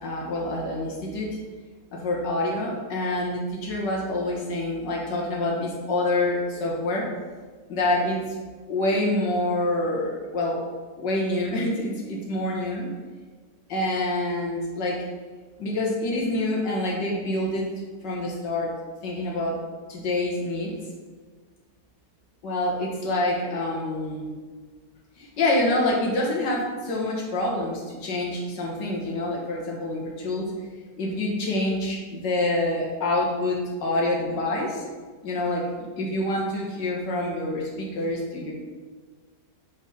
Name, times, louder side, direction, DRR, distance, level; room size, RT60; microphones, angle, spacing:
voice 1, 0.0-1.3 1.9-7.1 7.7-8.2 8.7-10.6 11.0-12.9 13.7-15.0 15.6-17.7 18.0-18.7 19.0-19.6 19.9-20.7 22.4-24.3 25.2-30.5 31.0-34.8 35.2-38.5, left 1 dB, 85° left, -3 dB, 2.0 m, -26 dB
7.1 x 3.9 x 4.3 m, 1.4 s
omnidirectional pair, 1.9 m